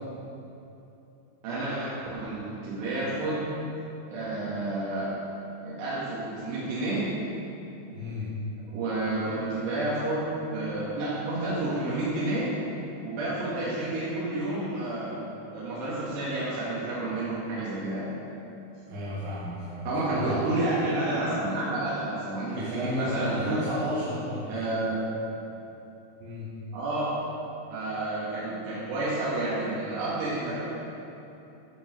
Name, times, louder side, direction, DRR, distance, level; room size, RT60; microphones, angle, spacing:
voice 1, 1.4-3.5 4.1-5.1 5.6-7.1 8.7-12.5 13.0-15.2 15.5-18.1 19.9-23.7 24.5-25.0 26.7-27.1 27.7-30.6, right 2 dB, 85° right, -9 dB, 4.1 m, -30 dB
voice 2, 7.9-8.4 18.9-20.4 22.5-24.8 26.2-26.6, left 1 dB, 65° right, -9 dB, 3.2 m, -33 dB
13.5 x 6.8 x 6.6 m, 2.9 s
omnidirectional pair, 4.7 m